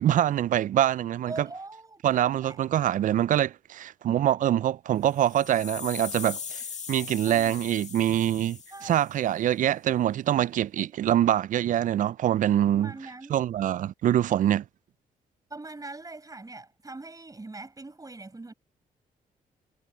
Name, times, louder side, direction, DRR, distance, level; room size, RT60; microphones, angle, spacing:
voice 1, 0.0-1.5 2.0-6.6 6.9-12.9 13.3-14.6, right 11 dB, 60° right, 0.4 m, -24 dB
voice 2, 1.2-2.6 7.3-7.6 8.7-9.0 10.8-10.9 12.0-12.1 12.7-13.4 15.5-18.5, right 3 dB, 25° right, 5.9 m, -42 dB
sound 1, 5.1-9.3, left 6 dB, 50° left, 1.5 m, -40 dB
cardioid pair, 70°, 15 cm